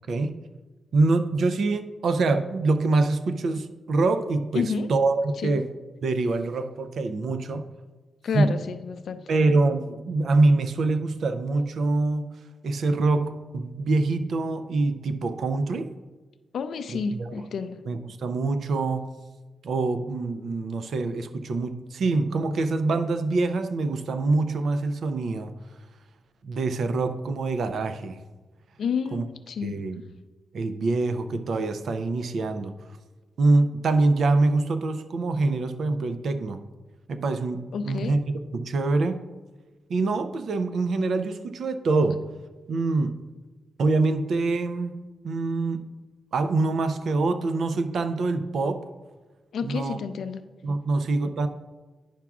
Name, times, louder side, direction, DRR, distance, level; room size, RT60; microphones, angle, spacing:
voice 1, 0.9-5.7 6.0-7.6 8.3-8.6 9.3-15.9 16.9-17.4 17.8-19.1 19.6-25.5 26.4-28.2 29.1-29.2 29.6-30.0 30.5-32.7 33.4-36.6 37.1-38.2 38.5-39.2 39.9-42.2 42.7-43.2 43.8-45.0 45.2-45.9 46.3-48.9 49.6-50.0 50.6-51.5, right 3 dB, 70° right, 9 dB, 0.4 m, -25 dB
voice 2, 4.5-4.9 5.4-5.6 8.2-9.3 16.5-17.8 28.8-29.8 37.7-38.2 49.5-50.5, left 5 dB, 75° left, 10 dB, 0.4 m, -30 dB
10.0 x 5.9 x 2.4 m, 1.3 s
wide cardioid pair, 110°, 0 cm